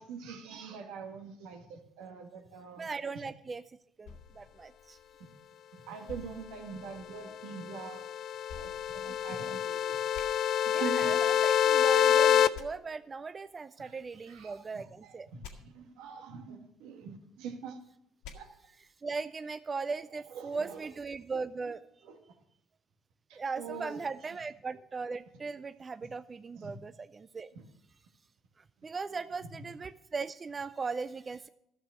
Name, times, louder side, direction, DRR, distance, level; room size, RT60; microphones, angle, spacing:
voice 1, 0.0-2.9 5.9-8.0 8.5-10.0 10.6-11.1 13.8-17.8 18.3-18.5 20.3-20.9 22.0-22.2 23.3-24.0 26.6-26.7 27.5-27.6 29.1-29.2, right 6 dB, 85° right, 5 dB, 1.5 m, -44 dB
voice 2, 2.8-3.6 4.0-5.0 9.0-9.6 10.7-15.3 19.0-21.8 23.3-27.5 28.6-31.5, right 4 dB, 30° right, 13 dB, 0.4 m, -38 dB
sound 1, 4.0-5.5 6.1-7.3 8.5-9.6 10.1-10.2 12.5-12.6 15.4-15.5 18.2-18.4, left 6 dB, 85° left, 1.6 m, -49 dB
sound 2, 7.5-12.5, left 10 dB, 60° left, 0.5 m, -26 dB
12.5 x 6.9 x 6.3 m, 0.79 s
supercardioid pair, 90°, 0 cm